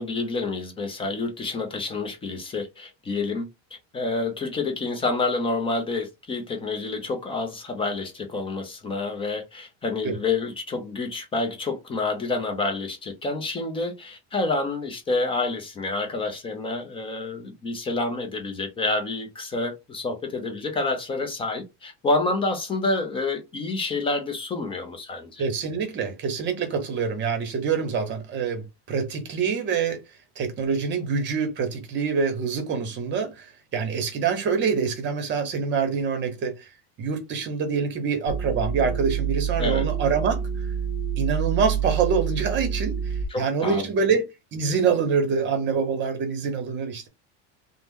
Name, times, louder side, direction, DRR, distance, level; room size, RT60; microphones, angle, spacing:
voice 1, 0.0-3.5 3.9-25.4 39.6-39.9 43.3-43.9, left 3 dB, 15° left, 0.4 m, -28 dB
voice 2, 25.4-30.0 30.4-36.7 37.0-40.7 41.2-47.1, right 5 dB, 30° right, 1.0 m, -26 dB
sound 1, 38.3-43.3, right 8 dB, 55° left, 0.7 m, -27 dB
2.8 x 2.1 x 3.5 m
supercardioid pair, 145°, 35 cm